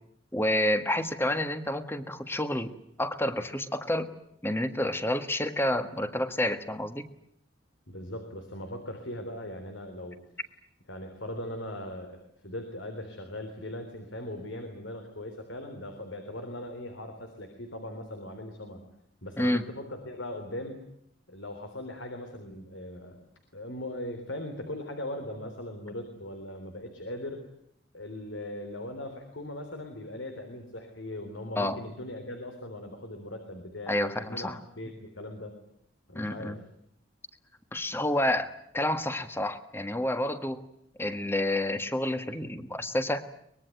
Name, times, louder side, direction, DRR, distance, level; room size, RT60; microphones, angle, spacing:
voice 1, 0.3-2.7 3.0-4.1 4.4-7.1 19.4-19.6 31.6-31.8 33.9-34.6 36.1-36.6 37.7-40.6 41.0-43.2, left 1 dB, 10° left, 10 dB, 1.6 m, -29 dB
voice 2, 7.9-10.2 10.9-18.8 19.2-20.8 21.3-23.3 23.5-27.4 27.9-35.5 36.1-36.6, left 1 dB, 85° left, 6 dB, 3.7 m, -39 dB
23.5 x 21.5 x 9.4 m, 0.71 s
head